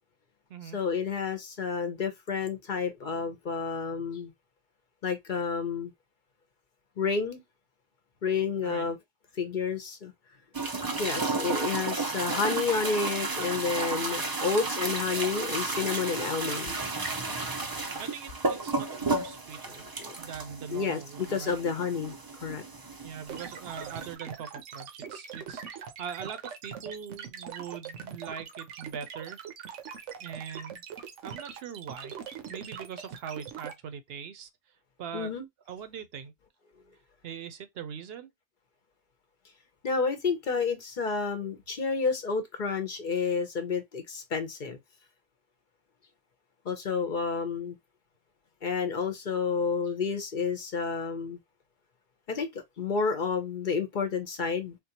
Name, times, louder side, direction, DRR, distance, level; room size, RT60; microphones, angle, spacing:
voice 1, 0.7-4.3 5.0-5.9 7.0-7.4 8.2-9.0 9.3-10.1 11.0-16.8 19.7-20.2 20.7-21.0 21.3-22.2 22.4-22.6 35.1-35.4 39.8-44.8 46.6-47.8 48.6-51.4 52.3-54.8, left 5 dB, 50° left, 0.7 m, -30 dB
sound 1, 10.5-24.1, right 3 dB, 35° right, 0.4 m, -33 dB
voice 2, 18.0-19.9 20.2-21.6 23.0-29.4 30.2-30.8 31.2-32.2 32.5-34.5 35.0-35.3 35.7-36.3 37.2-38.3, right 7 dB, 65° right, 0.8 m, -41 dB
sound 2, 23.3-33.7, right 7 dB, 90° right, 1.1 m, -42 dB
3.7 x 2.4 x 2.8 m
omnidirectional pair, 1.2 m